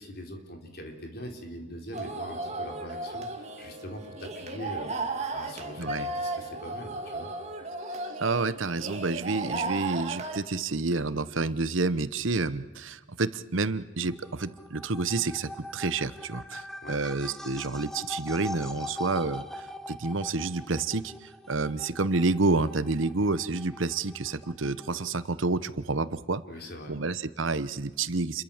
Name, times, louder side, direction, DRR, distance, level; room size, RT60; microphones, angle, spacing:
voice 1, 0.0-7.3 16.8-17.0 26.5-27.0, left 1 dB, 50° left, 3 dB, 4.3 m, -42 dB
sound 1, 1.9-10.4, right 2 dB, 35° right, 2.5 m, -35 dB
voice 2, 5.8-6.1 7.9-26.4 26.9-28.4, right 3 dB, 75° right, 14 dB, 1.0 m, -29 dB
sound 2, 14.1-25.3, left 1 dB, ahead, 1.1 m, -42 dB
29.5 x 22.5 x 7.3 m, 1.2 s
head